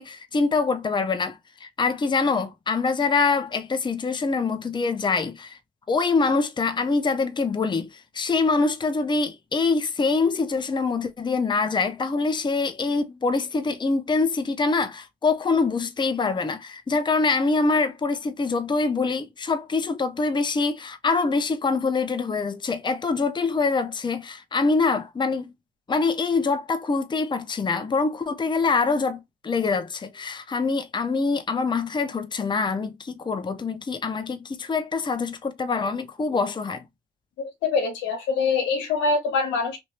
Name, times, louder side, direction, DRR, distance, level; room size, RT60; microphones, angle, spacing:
voice 1, 0.0-5.6 5.9-25.5 25.9-36.8, left 4 dB, 25° left, 0.6 m, -24 dB
voice 2, 37.4-39.8, left 4 dB, 90° left, 1.0 m, -24 dB
2.8 x 2.6 x 3.2 m
supercardioid pair, 50°, 19 cm